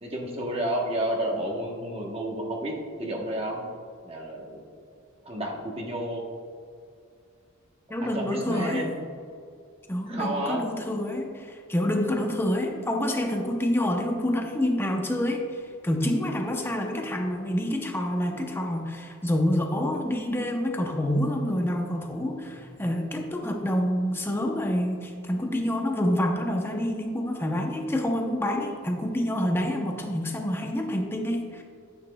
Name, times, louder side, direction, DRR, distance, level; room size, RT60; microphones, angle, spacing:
voice 1, 0.0-3.7 4.0-4.6 5.2-6.2 8.0-9.0 10.1-10.7, right 1 dB, 25° right, 0 dB, 1.0 m, -31 dB
voice 2, 7.9-8.9 9.9-31.6, left 1 dB, 10° left, 2 dB, 0.6 m, -27 dB
9.5 x 8.2 x 2.2 m, 2.3 s
head